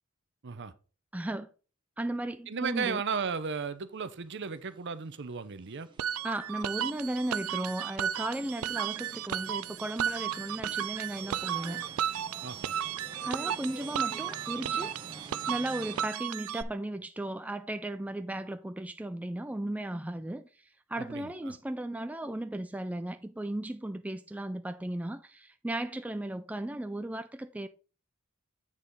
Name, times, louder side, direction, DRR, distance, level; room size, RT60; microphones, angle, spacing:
voice 1, 1.1-1.5 2.0-3.0 6.2-11.8 13.2-14.9 15.5-27.7, right 1 dB, 5° right, 0.3 m, -36 dB
voice 2, 2.5-5.9 12.4-12.7 21.0-21.6, right 5 dB, 55° right, 0.7 m, -35 dB
sound 1, 4.0-16.1, right 2 dB, 20° right, 1.2 m, -50 dB
sound 2, 6.0-16.6, right 9 dB, 85° right, 0.5 m, -34 dB
7.6 x 6.6 x 3.7 m
head